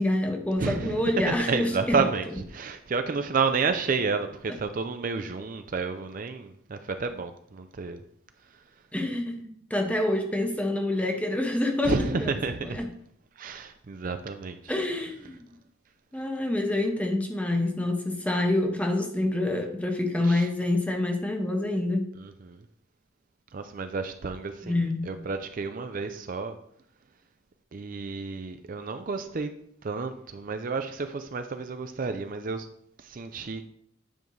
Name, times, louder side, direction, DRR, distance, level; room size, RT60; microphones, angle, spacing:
voice 1, 0.0-2.1 8.9-12.3 12.6-12.9 14.7-15.4 16.1-22.1 24.6-25.1, left 1 dB, 5° left, 3 dB, 0.8 m, -27 dB
voice 2, 0.6-1.0 1.3-8.0 11.9-12.8 13.4-14.6 20.2-20.5 22.1-22.6 23.5-24.8 25.1-26.6 27.7-29.5 29.8-32.7 33.0-33.7, right 4 dB, 40° right, 8 dB, 0.4 m, -30 dB
9.2 x 5.2 x 3.2 m, 0.66 s
head